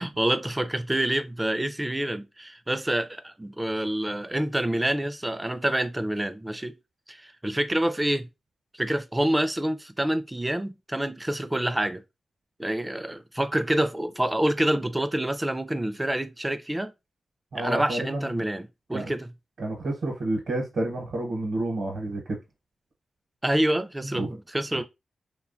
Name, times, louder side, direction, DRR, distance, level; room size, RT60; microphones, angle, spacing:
voice 1, 0.0-6.8 7.1-8.3 8.7-12.0 12.6-16.9 17.5-19.3 23.4-24.8, right 1 dB, 15° right, 0.3 m, -27 dB
voice 2, 17.5-18.4 18.9-19.0 19.6-22.4 24.0-24.3, right 2 dB, 70° right, 0.8 m, -30 dB
2.9 x 2.2 x 2.4 m
cardioid pair, 85°, 0 cm